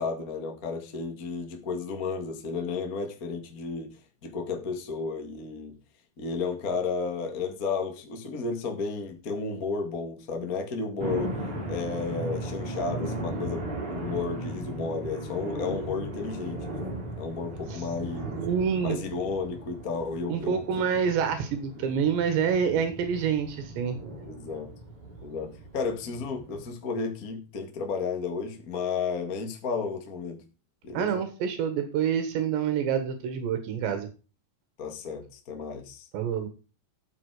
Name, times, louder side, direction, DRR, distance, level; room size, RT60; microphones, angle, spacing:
voice 1, 0.0-3.9 4.2-5.7 6.2-11.3 11.7-16.7 17.2-18.4 18.8-20.9 21.9-22.0 22.6-22.8 24.2-24.7 25.2-30.4 30.8-31.2 34.8-36.1, left 4 dB, 50° left, 4 dB, 1.0 m, -33 dB
sound 1, 11.0-26.7, right 1 dB, 45° right, 5.9 m, -37 dB
voice 2, 18.4-19.0 20.3-24.0 30.9-34.1 36.1-36.5, right 7 dB, 80° right, 8 dB, 3.7 m, -27 dB
13.0 x 7.4 x 4.9 m, 0.33 s
omnidirectional pair, 5.1 m